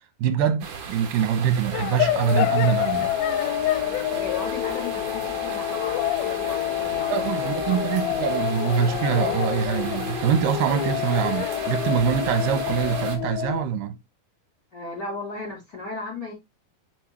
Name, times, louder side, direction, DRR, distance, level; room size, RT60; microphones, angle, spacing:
voice 1, 0.2-3.1 7.1-14.0, right 8 dB, 75° right, 2.5 m, -24 dB
sound 1, 0.6-13.2, right 6 dB, 55° right, 1.8 m, -36 dB
sound 2, 1.7-13.6, left 13 dB, 80° left, 2.3 m, -27 dB
voice 2, 4.1-7.8 14.7-16.3, left 2 dB, 30° left, 3.3 m, -36 dB
6.3 x 5.3 x 3.1 m
omnidirectional pair, 4.3 m